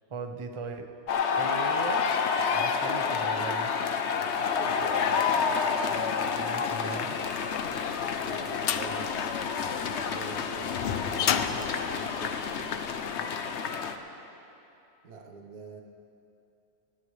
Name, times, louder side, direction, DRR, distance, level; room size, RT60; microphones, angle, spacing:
voice 1, 0.1-0.9 1.4-2.1 2.5-3.8 6.4-7.2, right 4 dB, 30° right, 6 dB, 0.6 m, -38 dB
sound 1, 1.1-14.0, left 6 dB, 55° left, 0.9 m, -29 dB
voice 2, 4.6-5.2 8.2-9.4 10.0-12.7 15.0-15.8, right 5 dB, 75° right, 2 dB, 1.7 m, -45 dB
sound 2, 7.6-12.9, left 8 dB, 85° left, 0.5 m, -32 dB
18.5 x 17.5 x 3.3 m, 2.7 s
omnidirectional pair, 1.6 m